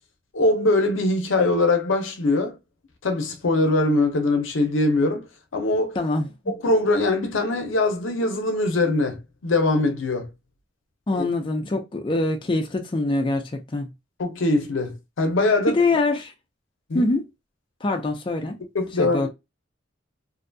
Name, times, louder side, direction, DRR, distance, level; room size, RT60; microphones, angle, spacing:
voice 1, 0.3-2.6 3.0-6.0 6.5-10.3 11.1-11.2 14.2-15.8 16.9-17.1 18.7-19.3, left 2 dB, 75° left, 0.6 m, -22 dB
voice 2, 6.0-6.3 11.1-13.9 15.7-16.3 16.9-17.2 17.8-18.6 19.0-19.3, left 2 dB, 25° left, 0.4 m, -24 dB
2.6 x 2.2 x 2.6 m
head